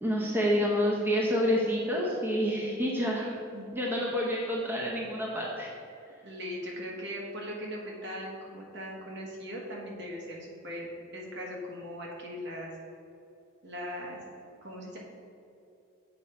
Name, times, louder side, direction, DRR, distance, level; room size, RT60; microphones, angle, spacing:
voice 1, 0.0-3.3 3.7-5.7, equal, 10° right, -4 dB, 0.8 m, -28 dB
voice 2, 3.2-3.6 6.2-12.7 13.6-14.2 14.6-15.0, equal, 55° right, -2 dB, 1.6 m, -39 dB
7.8 x 5.3 x 4.4 m, 2.7 s
head